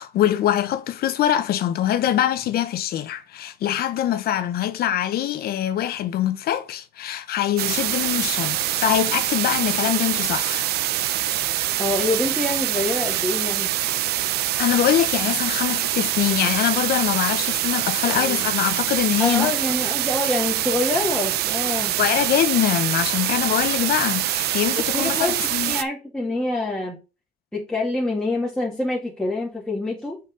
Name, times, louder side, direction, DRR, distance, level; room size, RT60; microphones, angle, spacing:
voice 1, 0.0-10.7 14.6-19.5 22.0-25.7, left 11 dB, 65° left, 0.9 m, -23 dB
sound 1, 7.6-25.8, right 13 dB, 70° right, 0.6 m, -24 dB
voice 2, 11.8-13.7 18.1-18.5 19.2-22.0 24.7-27.0 27.5-30.2, left 2 dB, 5° left, 1.8 m, -26 dB
5.7 x 4.2 x 6.1 m
cardioid pair, 110°, 17 cm